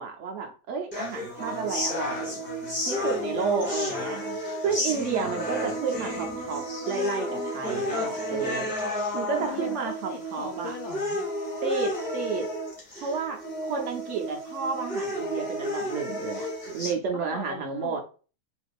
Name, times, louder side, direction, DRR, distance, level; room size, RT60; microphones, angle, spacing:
voice 1, 0.0-2.4 2.9-4.2 4.6-8.7 9.1-10.7 11.6-12.5 13.0-16.5 16.7-18.0, right 5 dB, 70° right, 3 dB, 0.6 m, -31 dB
sound 1, 0.9-16.9, left 1 dB, 20° left, 1.6 m, -31 dB
voice 2, 9.3-11.2 17.1-18.0, left 6 dB, 70° left, 1 dB, 1.1 m, -39 dB
3.4 x 2.8 x 2.4 m, 0.36 s
omnidirectional pair, 1.8 m